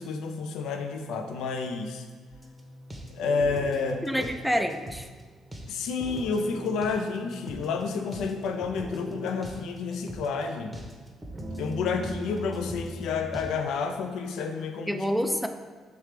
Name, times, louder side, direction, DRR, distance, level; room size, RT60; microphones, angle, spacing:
voice 1, 0.0-2.1 3.1-4.3 5.7-10.8 11.6-15.0, left 5 dB, 75° left, 5 dB, 0.4 m, -30 dB
sound 1, 2.3-13.5, right 1 dB, 15° right, 0.9 m, -40 dB
voice 2, 4.0-5.1 14.9-15.5, equal, ahead, 6 dB, 0.4 m, -27 dB
3.3 x 3.2 x 4.8 m, 1.4 s
hypercardioid pair, 55°, 0 cm